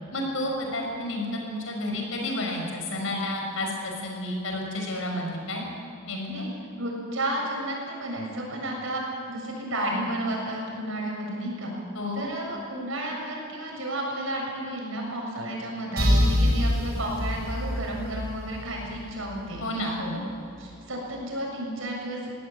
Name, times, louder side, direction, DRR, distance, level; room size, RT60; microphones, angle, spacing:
voice 1, 0.1-5.7 6.1-6.5 11.9-12.3 19.6-20.2, left 1 dB, 70° left, 1 dB, 6.1 m, -31 dB
voice 2, 6.8-11.7 12.1-20.2 20.6-22.3, right 1 dB, 70° right, -1 dB, 7.2 m, -32 dB
sound 1, 16.0-19.6, equal, 50° right, 6.7 m, -26 dB
21.0 x 17.0 x 8.9 m, 2.7 s
head